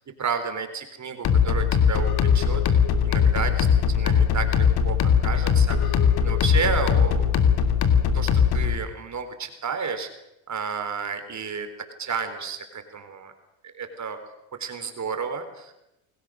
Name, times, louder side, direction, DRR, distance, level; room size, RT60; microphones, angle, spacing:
voice 1, 0.2-3.7 3.9-7.5 8.1-8.3 8.5-10.1 10.5-11.7 12.0-13.3 13.7-14.2 14.6-15.7, right 5 dB, 40° right, 7 dB, 4.2 m, -31 dB
sound 1, 1.2-8.8, left 7 dB, 55° left, 3.0 m, -20 dB
28.5 x 20.0 x 6.5 m, 0.89 s
hypercardioid pair, 70°, 46 cm